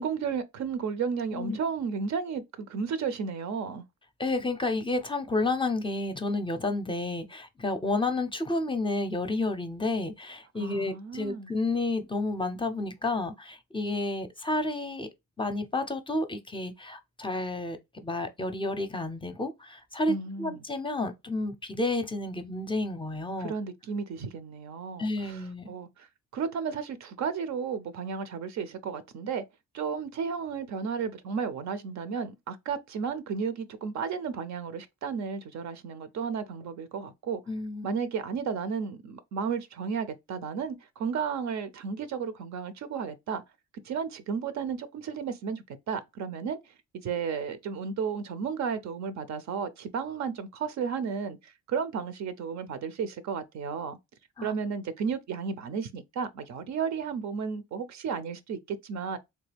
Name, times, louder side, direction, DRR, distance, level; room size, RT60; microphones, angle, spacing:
voice 1, 0.0-3.8 10.6-11.5 20.1-20.6 23.4-25.4 25.7-26.1 26.3-29.4 29.7-37.4 37.8-43.4 43.8-46.6 46.9-54.0 54.4-59.2, right 6 dB, 65° right, 0.6 m, -33 dB
voice 2, 4.2-15.1 15.4-23.5 25.0-25.7 37.5-37.9 54.4-54.5, left 2 dB, 15° left, 0.6 m, -31 dB
3.3 x 2.3 x 3.3 m
cardioid pair, 90°, 30 cm